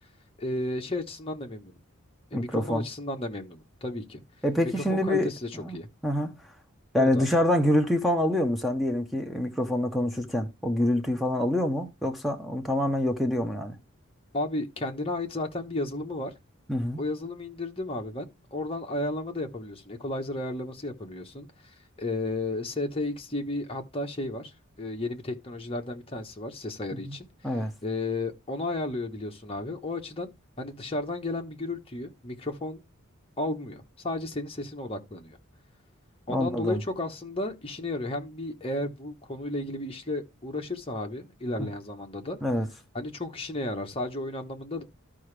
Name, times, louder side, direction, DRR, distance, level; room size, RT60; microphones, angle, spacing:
voice 1, 0.4-1.8 2.3-4.2 4.6-5.9 6.9-7.3 14.3-16.3 17.0-21.5 22.0-24.5 24.8-27.3 27.8-30.3 30.6-32.8 33.4-35.4 36.3-42.4 42.9-44.8, left 2 dB, 25° left, 1.1 m, -33 dB
voice 2, 2.3-2.9 4.4-5.3 5.6-5.8 6.0-6.3 6.9-13.8 16.7-17.0 26.9-27.1 27.4-27.7 36.3-36.8 41.6-41.7 42.4-42.7, left 1 dB, ahead, 0.8 m, -26 dB
13.0 x 4.9 x 3.3 m
head